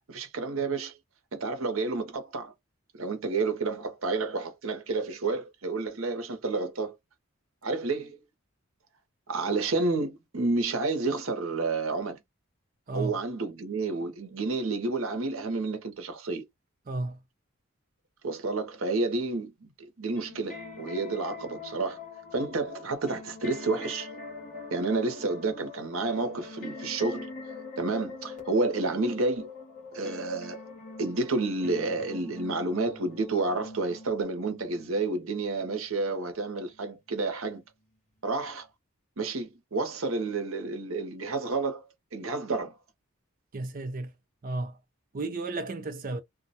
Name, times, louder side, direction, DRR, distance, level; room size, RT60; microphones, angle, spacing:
voice 1, 0.1-0.9 1.3-2.5 2.9-7.0 7.6-8.2 9.3-12.2 12.9-16.4 18.2-22.0 22.3-24.1 24.7-27.3 27.8-29.5 29.9-30.6 31.0-37.6 38.2-38.7 39.2-41.8 42.1-42.8, right 3 dB, 70° right, 0.8 m, -30 dB
voice 2, 16.9-17.2 43.5-44.1 44.4-44.8 45.1-46.2, right 2 dB, 40° right, 0.4 m, -33 dB
sound 1, 20.0-36.8 37.5-37.6, left 3 dB, 35° left, 0.8 m, -44 dB
2.2 x 2.1 x 2.7 m
head